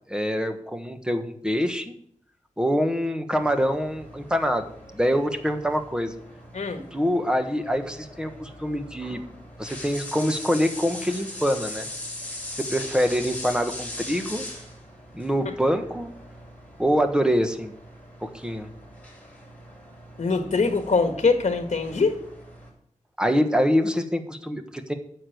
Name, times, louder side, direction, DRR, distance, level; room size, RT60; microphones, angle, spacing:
voice 1, 0.1-1.9 2.6-4.6 4.9-6.1 6.9-9.2 9.6-11.9 12.6-14.4 15.1-16.1 16.8-17.7 18.2-18.7 23.2-24.9, equal, 5° right, 7 dB, 1.3 m, -25 dB
sound 1, 3.4-22.7, left 1 dB, 10° left, 4.9 m, -41 dB
voice 2, 6.5-6.9 20.2-22.2, left 4 dB, 60° left, 7 dB, 1.5 m, -23 dB
9.6 x 6.8 x 7.9 m, 0.66 s
wide cardioid pair, 90°, 13 cm